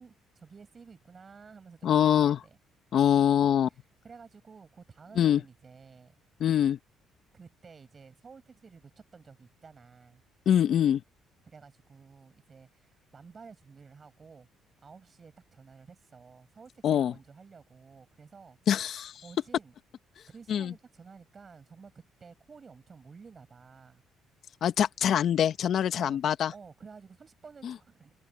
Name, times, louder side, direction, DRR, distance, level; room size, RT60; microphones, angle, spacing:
voice 1, 0.0-2.6 3.7-6.1 7.3-10.2 11.4-14.5 14.8-18.6 19.2-19.7 20.3-24.0 25.9-26.2 26.5-28.1, right 5 dB, 40° right, 6.4 m, -52 dB
voice 2, 1.8-2.4 2.9-3.7 5.2-5.4 6.4-6.8 10.4-11.0 16.8-17.1 18.7-19.1 20.5-20.7 24.6-26.5 27.6-27.7, left 9 dB, 60° left, 1.5 m, -24 dB
supercardioid pair, 80°, 0 cm